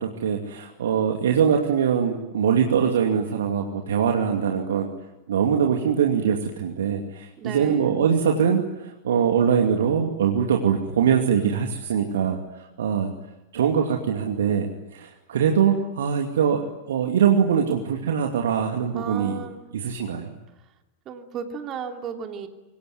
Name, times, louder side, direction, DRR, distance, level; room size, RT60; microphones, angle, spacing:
voice 1, 0.0-4.9 5.3-13.1 13.5-19.4 19.7-20.3, right 7 dB, 60° right, 2 dB, 2.6 m, -23 dB
voice 2, 7.4-8.0 18.9-19.7 21.0-22.5, right 7 dB, 30° right, 5 dB, 3.1 m, -34 dB
26.0 x 24.0 x 9.5 m, 1.0 s
figure-of-eight pair, 90°, 0 cm